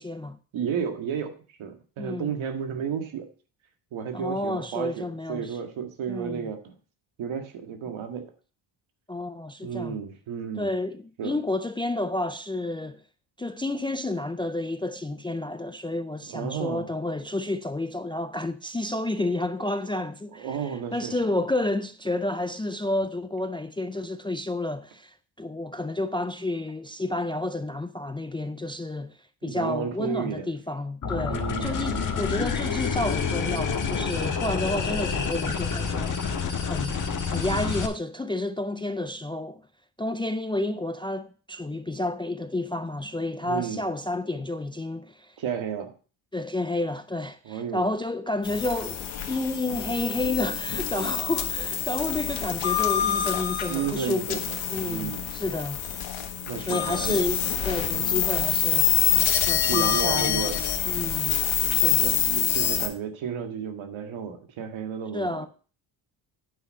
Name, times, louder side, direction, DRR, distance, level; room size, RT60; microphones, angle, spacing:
voice 1, 0.0-0.4 2.0-2.3 4.1-5.6 6.1-6.5 9.1-10.0 10.6-13.0 13.4-29.2 29.4-36.2 36.7-37.0 37.3-39.6 40.0-45.3 46.3-54.4 54.7-55.8 56.6-58.9 59.5-61.4 61.7-62.0 65.1-65.5, left 2 dB, 10° left, 0.3 m, -30 dB
voice 2, 0.5-3.3 3.9-6.7 7.2-8.3 9.6-10.7 11.2-11.4 16.3-16.9 20.4-21.2 29.4-30.5 31.3-32.1 43.5-43.8 45.4-45.9 47.4-47.8 53.7-55.3 56.5-57.2 57.9-58.2 59.7-60.6 62.0-65.5, right 7 dB, 75° right, 1.9 m, -32 dB
sound 1, 31.0-37.9, left 5 dB, 40° left, 1.5 m, -28 dB
sound 2, 48.4-62.9, left 10 dB, 75° left, 1.6 m, -26 dB
9.4 x 5.9 x 5.4 m
cardioid pair, 130°, 47 cm